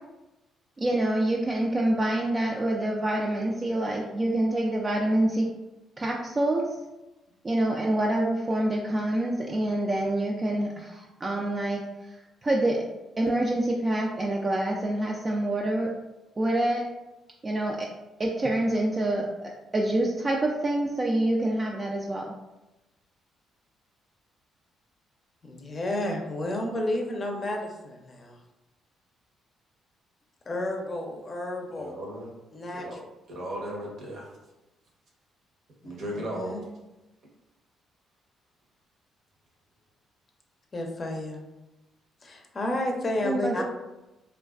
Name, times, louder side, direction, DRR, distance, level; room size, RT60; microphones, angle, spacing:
voice 1, 0.8-5.5 6.0-6.7 7.4-11.8 12.4-12.8 13.2-15.9 16.4-16.8 17.4-17.9 18.2-22.3 43.3-43.7, right 1 dB, 30° right, -2 dB, 0.3 m, -26 dB
voice 2, 25.4-28.4 30.5-32.0 32.5-33.0 35.8-36.6 40.7-41.4 42.2-43.6, left 1 dB, 40° left, 1 dB, 0.5 m, -31 dB
voice 3, 31.8-32.3 32.7-33.0 33.3-34.3 35.8-36.5, equal, 65° right, -2 dB, 0.7 m, -36 dB
2.3 x 2.2 x 2.3 m, 1.0 s
hypercardioid pair, 50°, 0 cm